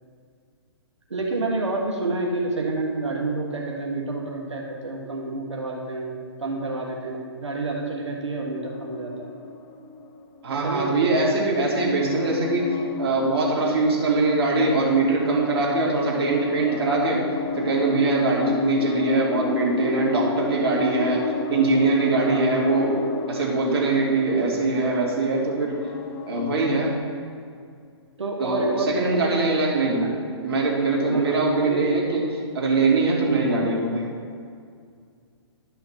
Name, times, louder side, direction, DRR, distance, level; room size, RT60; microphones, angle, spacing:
voice 1, 1.1-9.3 10.5-11.2 18.4-18.6 22.3-22.5 28.2-29.4 30.0-30.1 31.1-31.8 33.3-33.5, right 2 dB, 90° right, -1 dB, 1.4 m, -29 dB
sound 1, 8.6-10.5 10.9-27.0, left 5 dB, 20° left, 0.4 m, -32 dB
voice 2, 10.4-17.3 17.6-23.0 23.3-25.9 26.3-27.0 28.4-30.1 30.4-34.1, right 3 dB, 60° right, -3 dB, 2.5 m, -22 dB
12.0 x 5.7 x 4.4 m, 2.2 s
hypercardioid pair, 140°, 15 cm